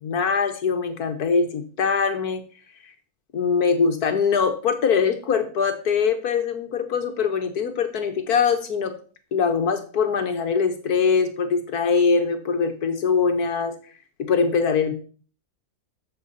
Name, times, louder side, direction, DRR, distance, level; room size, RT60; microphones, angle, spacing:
voice 1, 0.0-2.4 2.8-2.9 3.3-8.9 9.3-13.9 14.2-14.9, left 5 dB, 80° left, 7 dB, 1.9 m, -22 dB
14.0 x 6.4 x 4.1 m, 0.41 s
omnidirectional pair, 1.6 m